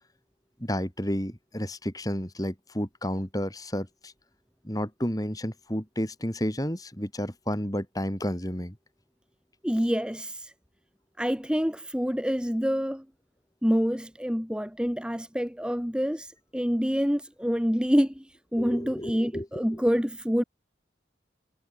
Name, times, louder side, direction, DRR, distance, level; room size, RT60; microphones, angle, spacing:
voice 1, 0.6-4.1 4.6-8.8 18.6-19.8, equal, 20° left, 6.3 m, -31 dB
voice 2, 9.6-10.5 11.2-13.0 13.6-20.4, equal, 5° right, 1.9 m, -27 dB
head